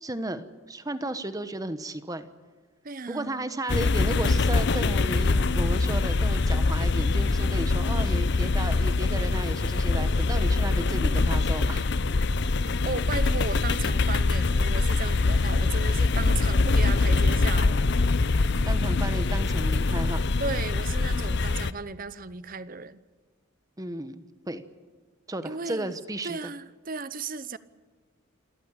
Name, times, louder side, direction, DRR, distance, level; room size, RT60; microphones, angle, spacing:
voice 1, 0.0-2.3 3.1-11.9 18.6-20.2 23.8-24.6 25.3-26.5, right 1 dB, 15° right, 11 dB, 1.1 m, -34 dB
voice 2, 2.8-3.6 12.8-17.8 20.4-23.0 25.4-25.9 26.2-27.6, right 4 dB, 40° right, 15 dB, 0.8 m, -35 dB
sound 1, 3.7-21.7, left 3 dB, 55° left, 0.7 m, -24 dB
28.0 x 14.0 x 10.0 m, 1.4 s
head